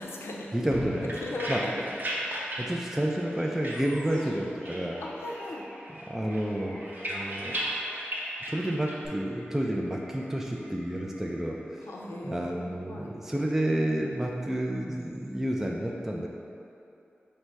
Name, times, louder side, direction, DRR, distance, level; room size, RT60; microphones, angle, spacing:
voice 1, 0.0-0.5 1.0-1.9 5.0-5.6 11.9-13.1, left 1 dB, 80° left, -2 dB, 0.5 m, -37 dB
voice 2, 0.5-1.1 1.5-1.7 2.6-5.0 6.0-6.8 7.1-7.6 8.5-11.9 12.2-16.3, right 1 dB, 10° right, -1 dB, 0.3 m, -30 dB
sound 1, 0.6-4.4 4.6-5.5 5.8-9.1, equal, 50° right, 0.8 m, -36 dB
sound 2, 0.7-2.9 3.2-3.3, equal, 70° right, 1.1 m, -40 dB
Animal, 3.6-11.6, equal, 20° left, 0.8 m, -50 dB
5.0 x 2.2 x 4.5 m, 2.8 s
wide cardioid pair, 85°, 4 cm